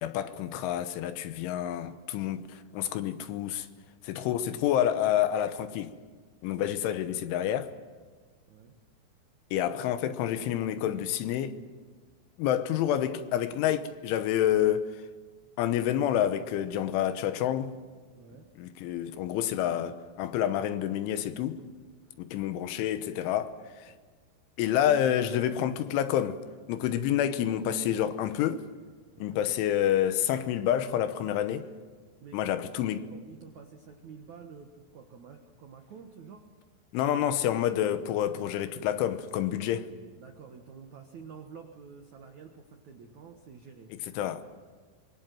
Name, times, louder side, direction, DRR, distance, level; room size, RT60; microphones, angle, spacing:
voice 1, 0.0-3.7 4.0-5.9 6.4-7.7 9.5-11.6 12.4-15.0 15.6-17.7 18.6-21.6 22.2-23.9 24.6-26.4 26.7-28.6 29.2-31.7 32.3-33.1 36.9-39.9 43.9-44.4, left 11 dB, 75° left, 3.3 m, -28 dB
voice 2, 8.5-8.8 18.1-18.5 29.1-29.5 32.2-36.6 40.1-44.0, right 6 dB, 85° right, 1.6 m, -49 dB
25.5 x 23.0 x 7.7 m
omnidirectional pair, 5.8 m